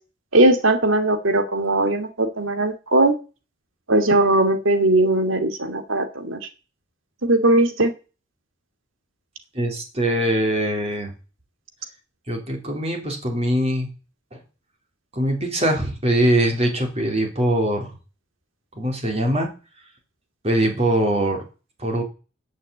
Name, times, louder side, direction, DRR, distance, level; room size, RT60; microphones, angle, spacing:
voice 1, 0.3-3.1 3.9-6.4 7.2-7.9, right 2 dB, 85° right, 6 dB, 2.5 m, -19 dB
voice 2, 9.5-11.1 12.3-13.9 15.1-18.0 18.7-19.5 20.4-21.4 21.8-22.0, right 1 dB, 30° right, 3 dB, 3.4 m, -22 dB
18.5 x 6.5 x 8.5 m, 0.35 s
head